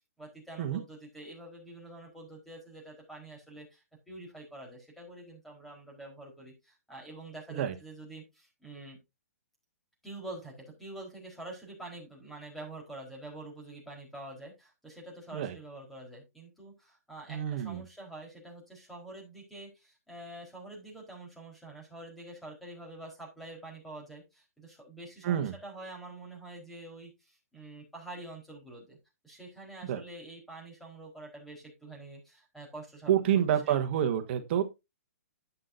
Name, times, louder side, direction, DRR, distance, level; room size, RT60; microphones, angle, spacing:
voice 1, 0.2-9.0 10.0-29.0 29.2-33.8, right 2 dB, ahead, 4.4 m, -46 dB
voice 2, 17.3-17.8 25.2-25.5 29.8-30.0 33.1-34.6, right 10 dB, 45° right, 1.3 m, -28 dB
11.0 x 8.2 x 2.7 m
hypercardioid pair, 135°, 8 cm